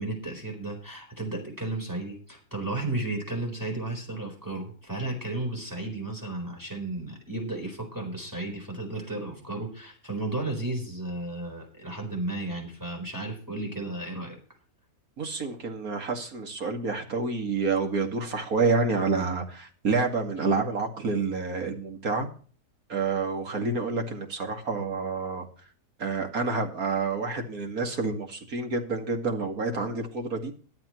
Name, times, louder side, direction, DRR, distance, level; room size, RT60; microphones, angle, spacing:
voice 1, 0.0-14.4, right 2 dB, 10° right, 4.3 m, -33 dB
voice 2, 15.2-22.3 22.9-25.5 26.0-30.5, right 4 dB, 65° right, 2.6 m, -28 dB
22.5 x 7.8 x 3.1 m
omnidirectional pair, 1.6 m